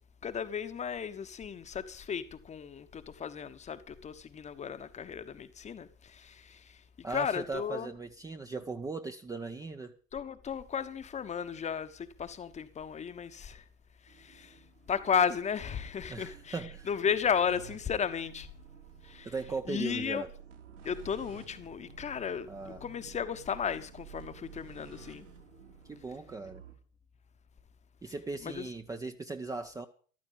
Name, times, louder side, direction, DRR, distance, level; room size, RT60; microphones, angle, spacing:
voice 1, 0.2-6.8 7.1-7.9 10.1-13.6 14.0-14.6 14.9-16.6 16.9-18.5 19.0-19.3 19.7-20.2 20.8-22.5 22.8-25.3 28.4-28.7, left 7 dB, 20° left, 1.1 m, -34 dB
voice 2, 7.0-9.9 16.1-16.9 19.2-20.3 22.5-22.8 25.9-26.6 28.0-29.9, right 3 dB, 10° right, 0.8 m, -38 dB
sound 1, 14.1-26.7, right 6 dB, 75° right, 3.6 m, -52 dB
13.5 x 13.0 x 5.4 m
figure-of-eight pair, 85°, 39 cm